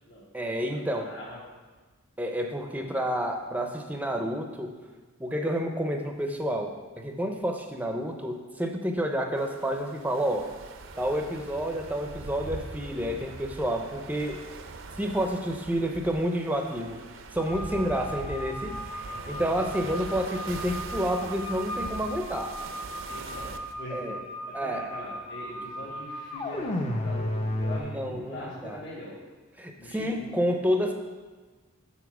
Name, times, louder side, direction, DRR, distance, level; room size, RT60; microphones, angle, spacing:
voice 1, 0.3-1.1 2.2-4.8 5.2-10.5 11.0-14.4 15.0-17.0 17.3-22.5 23.9-24.2 24.5-24.9 27.7-28.8 29.6-30.9, equal, 10° right, 4 dB, 0.5 m, -29 dB
voice 2, 0.9-1.4 17.7-17.8 19.1-19.4 23.1-24.2 24.5-29.2 29.8-30.4, left 1 dB, 60° left, -7 dB, 1.4 m, -42 dB
sound 1, 9.4-23.7, right 3 dB, 65° right, 0.5 m, -42 dB
sound 2, 17.4-27.8, left 1 dB, 30° left, 0.6 m, -35 dB
7.0 x 4.2 x 6.0 m, 1.3 s
head